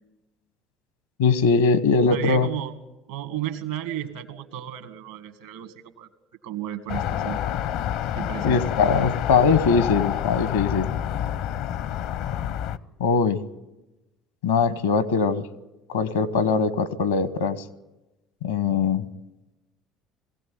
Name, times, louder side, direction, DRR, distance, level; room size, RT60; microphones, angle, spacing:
voice 1, 1.2-2.5 8.4-10.9 13.0-13.4 14.4-15.4 15.9-17.6 18.4-19.0, left 5 dB, 80° left, 16 dB, 1.1 m, -21 dB
voice 2, 2.1-2.7 3.1-6.1 6.4-7.4 8.1-8.6, right 12 dB, 75° right, 9 dB, 2.0 m, -33 dB
sound 1, 6.9-12.8, left 10 dB, 65° left, 0.7 m, -28 dB
22.0 x 16.5 x 9.4 m, 1.0 s
figure-of-eight pair, 60°, 0 cm